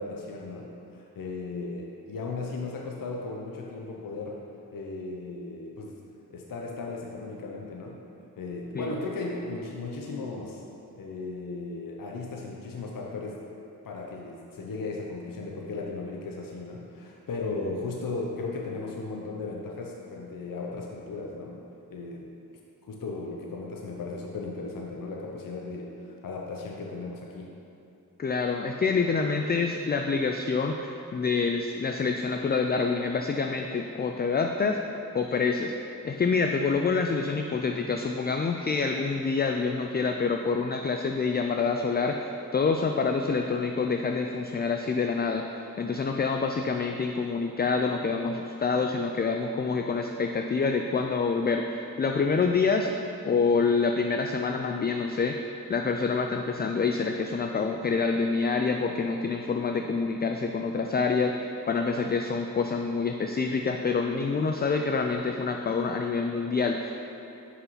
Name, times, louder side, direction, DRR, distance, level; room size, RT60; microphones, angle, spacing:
voice 1, 0.0-4.4 4.7-6.0 6.3-8.0 8.4-10.6 10.9-13.4 13.8-21.6 21.9-22.2 22.8-27.5, left 3 dB, 65° left, -1 dB, 0.8 m, -36 dB
voice 2, 28.2-34.8 35.1-35.7 36.0-45.4 45.8-52.9 53.2-55.4 55.7-66.9, left 4 dB, 30° left, 4 dB, 0.4 m, -27 dB
5.7 x 5.6 x 5.6 m, 2.9 s
cardioid pair, 70°, 36 cm